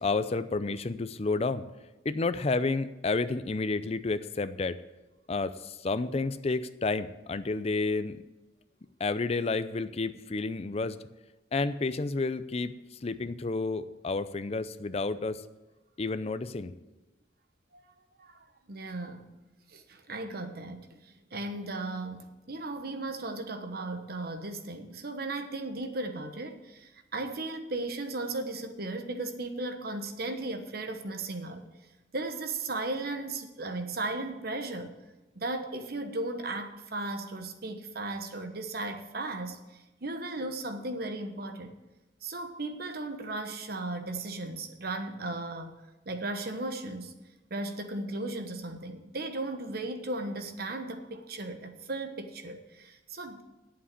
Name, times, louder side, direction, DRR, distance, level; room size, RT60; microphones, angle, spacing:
voice 1, 0.0-1.7 2.0-4.8 5.3-8.2 9.0-11.0 11.5-12.7 13.0-15.4 16.0-16.7, left 3 dB, 35° left, 13 dB, 0.5 m, -30 dB
voice 2, 18.2-19.3 19.7-31.6 32.1-35.0 35.3-41.7 42.2-45.8 46.1-47.2 47.5-53.4, right 2 dB, 55° right, 7 dB, 1.1 m, -36 dB
8.7 x 7.4 x 8.3 m, 1.1 s
head